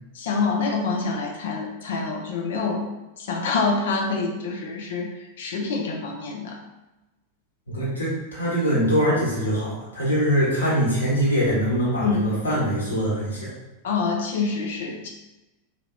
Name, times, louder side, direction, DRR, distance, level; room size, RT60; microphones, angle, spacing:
voice 1, 0.1-2.9 3.2-5.1 5.4-6.6 12.0-12.3 13.8-15.1, left 4 dB, 60° left, 1 dB, 0.6 m, -26 dB
voice 2, 7.7-13.5, equal, 75° left, -7 dB, 1.5 m, -23 dB
4.2 x 2.9 x 2.3 m, 1.0 s
figure-of-eight pair, 90°, 0 cm